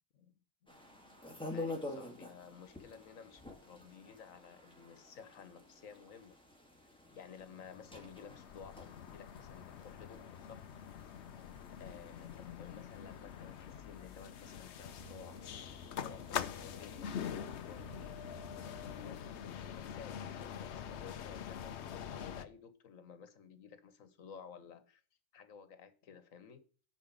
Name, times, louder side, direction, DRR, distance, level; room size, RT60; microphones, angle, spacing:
voice 1, 0.6-6.4 7.1-10.7 11.8-15.4 16.0-17.1 17.4-18.2 18.6-25.0 25.3-26.6, left 6 dB, 85° left, 1.5 m, -54 dB
sound 1, 0.7-18.4, left 2 dB, 5° left, 1.9 m, -50 dB
sound 2, 7.4-22.5, left 8 dB, 60° left, 0.9 m, -45 dB
sound 3, 15.0-19.3, right 11 dB, 45° right, 1.0 m, -59 dB
9.9 x 4.9 x 5.2 m
omnidirectional pair, 1.4 m